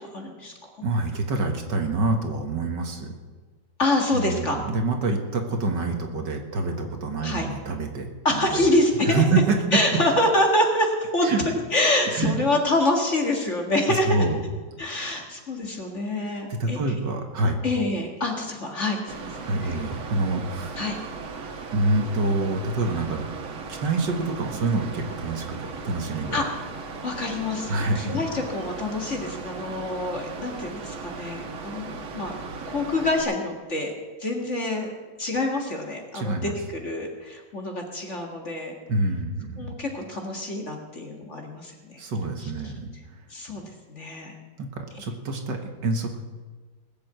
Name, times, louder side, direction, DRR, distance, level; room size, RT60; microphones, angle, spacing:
voice 1, 0.0-0.7 3.8-4.6 7.2-7.5 8.2-9.2 9.7-14.2 14.8-16.8 17.6-19.7 20.8-21.0 26.3-26.4 27.0-32.3 32.7-33.9 34.2-34.9 35.2-38.7 39.6-42.0 42.4-42.5 43.3-44.3, left 1 dB, 35° left, 2 dB, 2.0 m, -26 dB
voice 2, 0.8-3.1 4.1-8.7 9.1-9.8 11.2-11.4 12.1-12.4 13.9-14.4 14.8-15.3 16.5-17.7 19.5-20.8 21.7-23.2 23.7-26.4 27.7-28.1 36.1-36.5 38.9-39.7 42.0-43.2 44.6-46.2, right 3 dB, 60° right, 4 dB, 2.1 m, -26 dB
Mechanical fan, 19.1-33.2, right 4 dB, 90° right, 2.2 m, -37 dB
20.0 x 7.0 x 8.0 m, 1.4 s
omnidirectional pair, 2.2 m